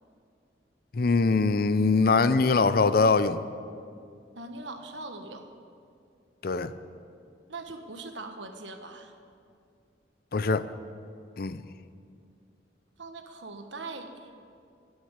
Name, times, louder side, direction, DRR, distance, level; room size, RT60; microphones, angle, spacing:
voice 1, 0.9-3.4 6.4-6.7 10.3-10.7 11.4-11.6, left 4 dB, 55° left, 14 dB, 0.5 m, -23 dB
voice 2, 4.3-5.5 7.5-9.1 13.0-14.3, right 3 dB, 90° right, 6 dB, 1.4 m, -41 dB
13.5 x 9.6 x 8.0 m, 2.3 s
head